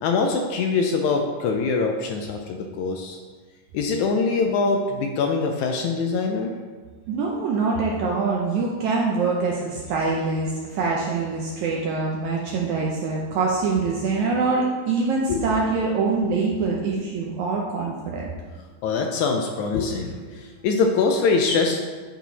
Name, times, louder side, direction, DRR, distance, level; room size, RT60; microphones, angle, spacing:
voice 1, 0.0-3.2 3.7-6.6 15.3-15.4 18.8-21.8, left 4 dB, 85° left, 3 dB, 1.7 m, -23 dB
voice 2, 7.1-18.3, right 4 dB, 75° right, -2 dB, 1.8 m, -24 dB
9.2 x 4.6 x 4.0 m, 1.5 s
omnidirectional pair, 4.0 m